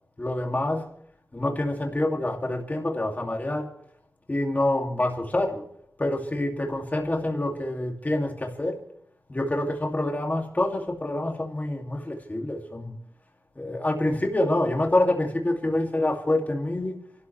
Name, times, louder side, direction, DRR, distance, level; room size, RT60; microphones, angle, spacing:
voice 1, 0.2-0.9 1.3-3.7 4.3-5.7 6.0-8.8 9.3-12.9 13.6-17.0, left 1 dB, 30° left, 2.5 m, -26 dB
28.5 x 12.5 x 3.3 m
wide cardioid pair, 80°, 5 cm